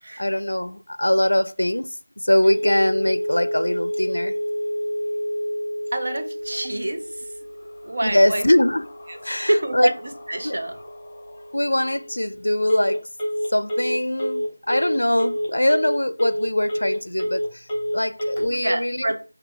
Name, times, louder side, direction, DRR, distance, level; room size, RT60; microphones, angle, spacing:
voice 1, 0.2-4.3 8.0-8.8 9.2-9.9 10.4-10.6 11.5-13.0 13.5-17.7 17.9-19.1, left 1 dB, 85° left, 0.4 m, -22 dB
Telephone, 2.4-18.4, equal, 5° left, 1.2 m, -29 dB
voice 2, 5.9-7.4 7.8-8.4 9.1-10.8 18.4-19.1, right 1 dB, 50° right, 0.9 m, -26 dB
sound 1, 6.4-12.5, left 2 dB, 30° left, 0.6 m, -49 dB
4.0 x 2.7 x 3.4 m
figure-of-eight pair, 170°, 0 cm